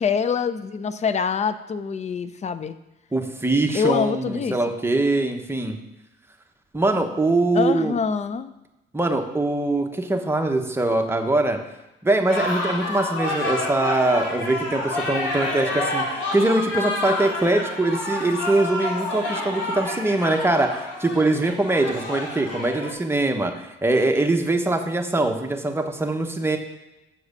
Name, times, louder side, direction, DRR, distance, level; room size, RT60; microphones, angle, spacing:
voice 1, 0.0-2.8 3.7-4.6 7.5-8.5, left 6 dB, 35° left, 13 dB, 0.5 m, -25 dB
voice 2, 3.1-5.8 6.7-7.9 8.9-11.6 12.0-16.0 16.3-26.6, right 2 dB, 10° right, 4 dB, 1.0 m, -22 dB
sound 1, 12.3-22.9, left 2 dB, 75° left, 2.4 m, -28 dB
7.1 x 4.8 x 6.5 m, 0.98 s
cardioid pair, 90°, 20 cm